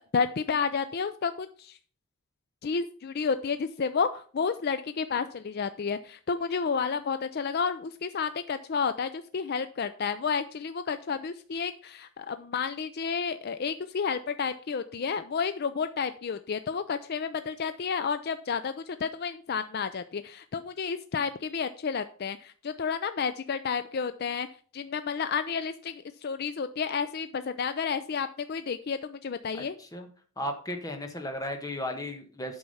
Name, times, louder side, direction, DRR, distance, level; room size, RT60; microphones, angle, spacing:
voice 1, 0.1-1.8 2.6-24.5 24.7-29.7, left 5 dB, 45° left, 11 dB, 0.4 m, -31 dB
voice 2, 29.5-30.1 30.4-32.6, left 1 dB, 15° left, 5 dB, 1.3 m, -35 dB
8.5 x 6.0 x 5.6 m, 0.43 s
head